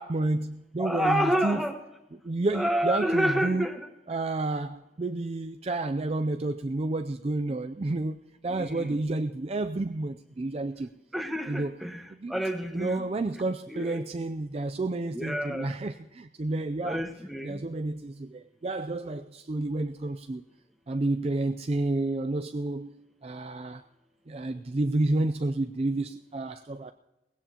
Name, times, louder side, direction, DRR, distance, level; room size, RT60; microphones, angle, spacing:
voice 1, 0.0-1.6 2.2-3.7 4.1-10.9 11.5-11.8 12.1-12.4 12.7-17.1 17.4-20.4 20.9-23.8 24.3-26.9, right 2 dB, 35° right, 0.4 m, -30 dB
voice 2, 0.8-1.8 2.5-3.9 8.5-9.0 11.1-12.0 12.3-13.0 13.7-14.1 15.1-15.8 16.8-17.6, equal, ahead, 1.2 m, -29 dB
19.5 x 17.0 x 2.9 m
head